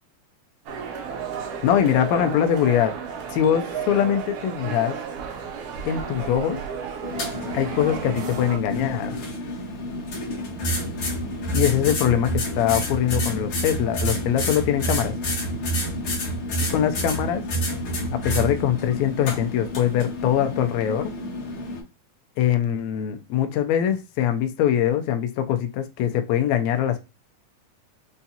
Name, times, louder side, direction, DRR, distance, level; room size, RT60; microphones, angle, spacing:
sound 1, 0.7-8.6, right 6 dB, 85° right, 1.3 m, -33 dB
voice 1, 1.6-2.9 3.3-5.0 5.8-6.6 7.5-9.1 11.5-15.1 16.7-17.4 18.1-21.1 22.4-27.0, left 10 dB, 80° left, 1.6 m, -22 dB
sound 2, 7.0-21.8, equal, 55° left, 1.6 m, -29 dB
5.4 x 2.4 x 2.7 m
omnidirectional pair, 3.7 m